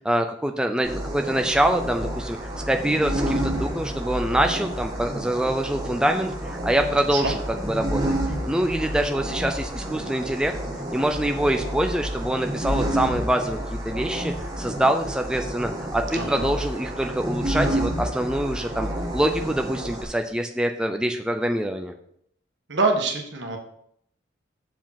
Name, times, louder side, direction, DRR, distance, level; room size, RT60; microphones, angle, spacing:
voice 1, 0.0-2.4 2.7-8.0 8.5-10.5 10.9-13.6 13.8-21.9, right 1 dB, 5° right, 4 dB, 0.4 m, -25 dB
sound 1, 0.8-20.0, right 1 dB, 20° right, 1.9 m, -29 dB
voice 2, 16.1-16.5 22.7-23.6, right 3 dB, 65° right, 2 dB, 1.4 m, -25 dB
7.2 x 4.9 x 5.7 m, 0.70 s
head